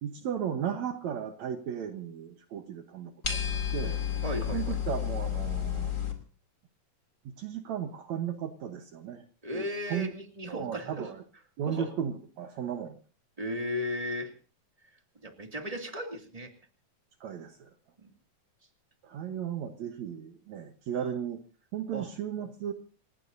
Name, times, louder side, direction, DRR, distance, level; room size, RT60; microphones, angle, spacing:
voice 1, 0.0-3.4 3.7-4.0 4.5-5.9 7.3-9.2 9.5-10.1 10.5-11.2 11.6-13.0 17.2-17.7 19.0-21.4 21.7-22.7, right 8 dB, 65° right, 6 dB, 2.2 m, -35 dB
sound 1, 3.2-6.1, left 9 dB, 25° left, 2.5 m, -31 dB
voice 2, 4.2-4.8 9.4-11.1 11.7-11.9 13.4-14.3 15.2-16.5 18.0-18.1 21.9-22.1, left 1 dB, 15° right, 3 dB, 2.0 m, -35 dB
29.0 x 16.5 x 2.7 m, 0.37 s
omnidirectional pair, 3.7 m